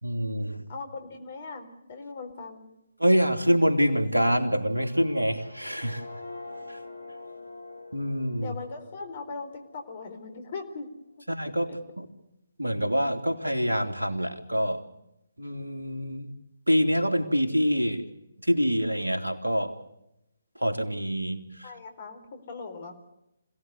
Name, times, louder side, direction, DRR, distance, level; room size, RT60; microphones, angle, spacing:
voice 1, 0.0-0.7 3.0-6.0 6.7-6.8 7.9-8.5 11.3-12.1 12.6-14.8 15.4-16.3 16.7-18.0 18.4-19.8 20.5-21.7, equal, 80° right, 4 dB, 3.0 m, -26 dB
voice 2, 0.7-2.7 8.4-10.9 21.6-23.0, left 4 dB, 40° left, 6 dB, 4.2 m, -39 dB
sound 1, 4.5-10.4, left 2 dB, 70° left, 4.3 m, -45 dB
26.5 x 18.0 x 8.0 m, 0.86 s
figure-of-eight pair, 140°, 0 cm